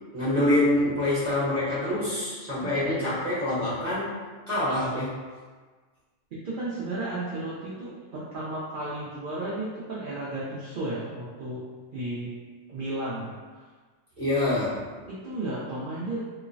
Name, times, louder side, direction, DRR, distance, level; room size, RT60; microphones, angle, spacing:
voice 1, 0.1-4.2 4.5-5.2 14.2-14.8, left 1 dB, 35° right, -12 dB, 0.8 m, -26 dB
voice 2, 2.6-3.1 6.4-11.6 11.9-12.3 12.7-13.7 15.1-16.2, right 2 dB, 60° right, -7 dB, 0.5 m, -34 dB
3.0 x 2.0 x 2.5 m, 1.4 s
omnidirectional pair, 1.4 m